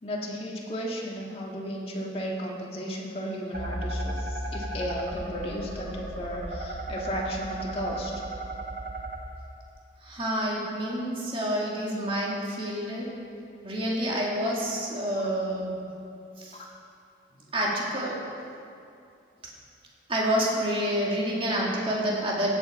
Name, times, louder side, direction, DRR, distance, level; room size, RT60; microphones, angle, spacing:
voice 1, 0.0-8.2 16.5-16.7, equal, 30° left, -2 dB, 1.7 m, -34 dB
sound 1, 3.5-9.2, right 1 dB, 55° right, 1.3 m, -35 dB
voice 2, 10.0-13.1 13.6-15.7 16.4-16.6 17.5-18.2 20.1-22.6, equal, 30° right, -3 dB, 2.1 m, -28 dB
16.0 x 8.2 x 4.6 m, 2.5 s
head